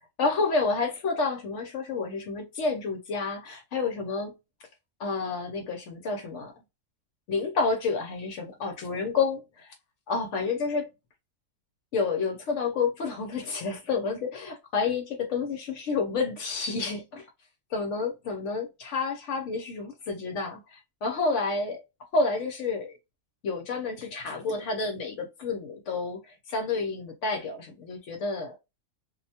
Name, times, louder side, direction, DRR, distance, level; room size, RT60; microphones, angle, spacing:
voice 1, 0.2-4.3 5.0-6.5 7.3-9.7 10.1-10.9 11.9-17.3 17.7-21.8 22.1-23.0 23.4-28.6, left 4 dB, 70° left, 0.8 m, -29 dB
2.4 x 2.1 x 2.7 m
omnidirectional pair, 1.4 m